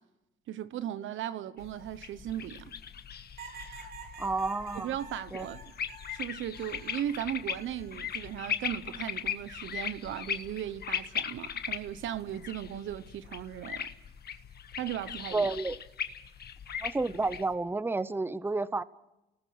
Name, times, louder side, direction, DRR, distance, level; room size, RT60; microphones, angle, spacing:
voice 1, 0.5-2.6 4.8-5.6 6.1-13.9 14.8-15.5, right 11 dB, 75° right, 1.0 m, -37 dB
sound 1, 1.6-17.5, left 8 dB, 55° left, 1.5 m, -39 dB
sound 2, 3.4-7.1 7.5-8.3 9.7-10.1, right 4 dB, 50° right, 3.8 m, -49 dB
voice 2, 4.2-5.0 5.3-5.5 15.3-15.8 16.8-18.8, right 3 dB, 10° right, 0.7 m, -30 dB
29.5 x 19.5 x 6.0 m
cardioid pair, 90°, 20 cm